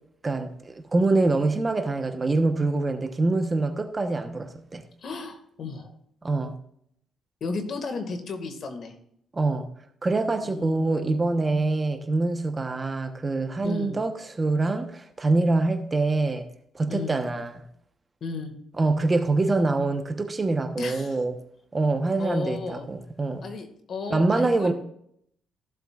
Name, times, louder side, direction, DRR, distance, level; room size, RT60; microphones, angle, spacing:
voice 1, 0.2-4.8 6.2-6.6 9.3-9.7 10.0-16.5 16.7-17.6 18.8-21.4 21.7-23.5 24.1-24.7, right 3 dB, 25° right, 7 dB, 1.1 m, -25 dB
voice 2, 5.0-5.9 7.4-8.9 10.4-11.2 13.6-14.0 16.9-17.2 18.2-18.5 20.8-21.2 22.2-22.9 23.4-24.7, left 4 dB, 55° left, 5 dB, 2.0 m, -34 dB
15.5 x 7.6 x 2.5 m, 0.69 s
cardioid pair, 90°, 0 cm